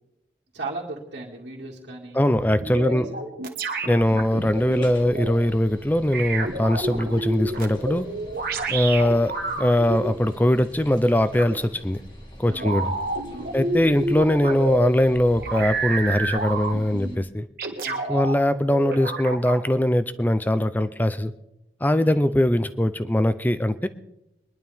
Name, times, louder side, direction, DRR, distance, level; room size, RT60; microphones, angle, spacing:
voice 1, 0.5-2.2 2.7-3.0 12.5-13.6 17.8-18.2 22.0-22.2, right 2 dB, 80° right, -6 dB, 2.2 m, -37 dB
voice 2, 2.1-3.1 3.9-8.1 8.7-12.0 12.4-12.9 13.5-17.5 18.1-21.3 21.8-23.9, left 1 dB, 10° left, 12 dB, 0.5 m, -21 dB
sound 1, 2.4-5.3 6.1-10.1 11.4-11.6 12.6-14.9 15.4-17.1 17.6-18.4 18.7-19.6, right 2 dB, 50° right, 1.5 m, -29 dB
sound 2, 4.0-17.2, equal, 25° left, 1.6 m, -45 dB
23.0 x 11.0 x 3.5 m, 0.88 s
head